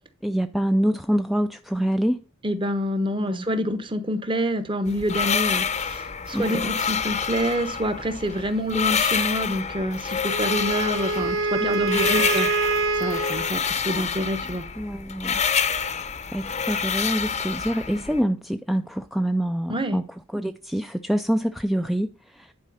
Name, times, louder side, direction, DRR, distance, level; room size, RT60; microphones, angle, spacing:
voice 1, 0.2-2.2 3.2-3.4 6.3-6.5 11.6-12.4 14.8-15.4 15.9-20.0 20.3-22.5, equal, ahead, 0.3 m, -26 dB
voice 2, 2.4-12.5 13.0-14.6 19.7-20.0, equal, 25° right, 1.0 m, -27 dB
sound 1, 4.9-18.2, left 6 dB, 35° left, 0.7 m, -27 dB
Wind instrument woodwind instrument, 10.3-13.5, right 3 dB, 65° right, 0.9 m, -25 dB
10.5 x 4.9 x 5.4 m
head